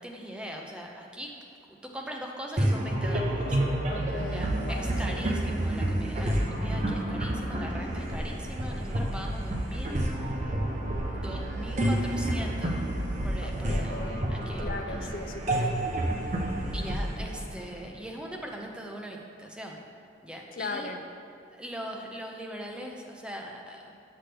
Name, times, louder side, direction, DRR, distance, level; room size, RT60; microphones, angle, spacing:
voice 1, 0.0-1.3 1.7-3.6 4.3-10.3 11.1-12.8 13.2-14.0 14.3-15.2 16.7-19.8 20.2-20.9 21.5-23.9, equal, 5° right, 0 dB, 0.5 m, -40 dB
sound 1, 2.6-18.2, right 1 dB, 40° right, 0.7 m, -29 dB
voice 2, 3.9-5.2 13.4-14.3 14.6-15.9 20.5-21.0, left 2 dB, 50° left, 4 dB, 0.4 m, -38 dB
7.9 x 5.9 x 3.3 m, 2.4 s
head